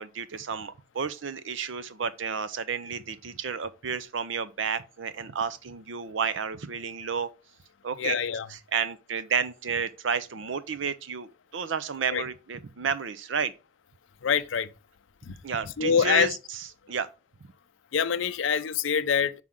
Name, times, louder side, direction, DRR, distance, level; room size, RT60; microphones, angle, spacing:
voice 1, 0.0-7.3 7.8-8.2 8.5-13.5 15.4-17.1, right 6 dB, 80° right, 0.6 m, -31 dB
voice 2, 8.0-8.5 12.1-12.2 14.2-14.7 15.3-15.4 15.8-16.4 17.9-19.4, left 7 dB, 90° left, 0.5 m, -25 dB
6.1 x 5.6 x 3.6 m
head